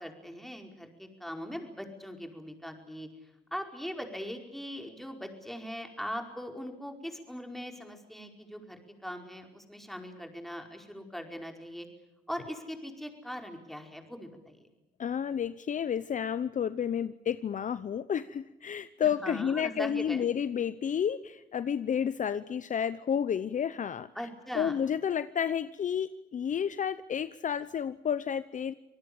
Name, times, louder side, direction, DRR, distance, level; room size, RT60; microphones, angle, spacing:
voice 1, 0.0-3.1 3.5-11.9 12.3-14.7 19.2-20.2 24.1-24.8, equal, ahead, 4 dB, 4.9 m, -40 dB
voice 2, 15.0-24.1 24.5-28.7, left 8 dB, 45° left, 14 dB, 0.8 m, -31 dB
26.5 x 19.0 x 8.7 m, 0.96 s
cardioid pair, 85°, 18 cm